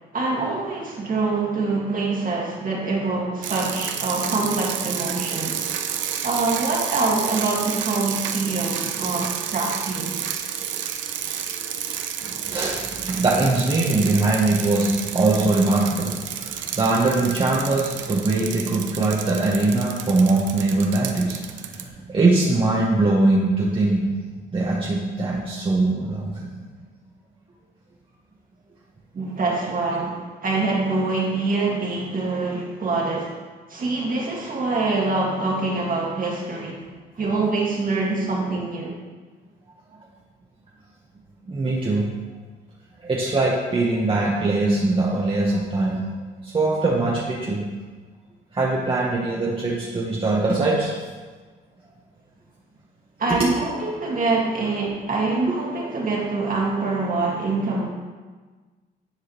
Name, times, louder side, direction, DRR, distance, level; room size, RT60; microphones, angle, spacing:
voice 1, 0.1-5.7 6.2-10.1 29.1-33.4 33.7-36.8 37.2-38.9 53.2-57.9, right 3 dB, 45° right, -2 dB, 1.8 m, -25 dB
sound 1, 3.4-21.8, right 9 dB, 70° right, 0.6 m, -30 dB
voice 2, 12.2-24.1 24.5-26.5 41.5-42.1 43.0-46.1 46.4-47.6 48.5-51.1 53.4-53.6, right 2 dB, 25° right, -5 dB, 1.1 m, -22 dB
9.7 x 4.8 x 3.0 m, 1.4 s
cardioid pair, 90°, 20 cm